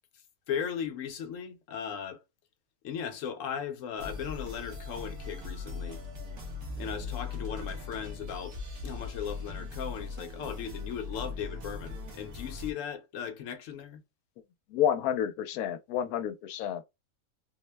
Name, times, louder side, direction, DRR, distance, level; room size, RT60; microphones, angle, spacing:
voice 1, 0.5-2.2 2.8-6.0 6.8-8.6 8.8-14.0, left 8 dB, 70° left, 0.9 m, -37 dB
sound 1, 4.0-12.7, left 4 dB, 80° right, 1.6 m, -39 dB
voice 2, 14.7-16.8, left 10 dB, 90° left, 1.1 m, -29 dB
3.9 x 2.1 x 3.2 m
omnidirectional pair, 1.5 m